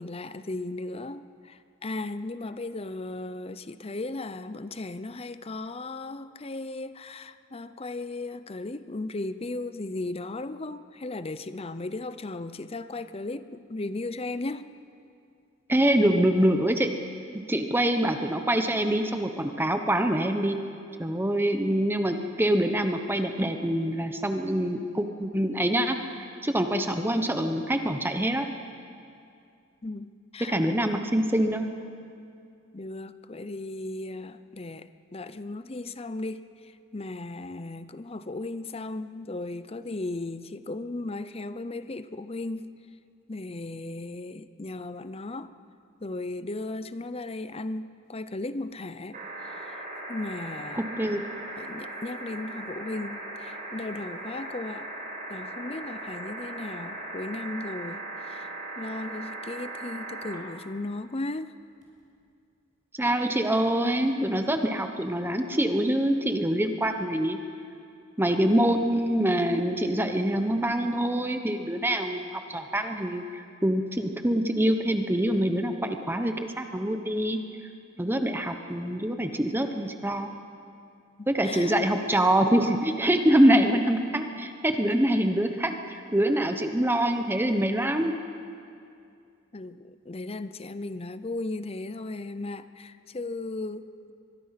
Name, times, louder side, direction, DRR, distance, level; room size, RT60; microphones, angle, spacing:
voice 1, 0.0-14.7 29.8-30.9 32.7-42.7 43.3-45.5 46.0-49.7 50.1-50.9 51.6-54.9 55.3-58.5 58.8-61.5 81.2-82.0 89.5-94.1, left 2 dB, 30° left, 12 dB, 0.7 m, -36 dB
voice 2, 15.7-16.9 17.5-20.6 21.0-28.5 30.5-31.7 50.7-51.2 63.0-67.4 68.2-77.4 78.0-80.3 81.3-88.1, right 1 dB, 10° right, 6 dB, 1.0 m, -25 dB
sound 1, 49.1-60.4 61.8-61.9, right 2 dB, 40° right, 5.2 m, -38 dB
24.0 x 22.0 x 5.9 m, 2.4 s
head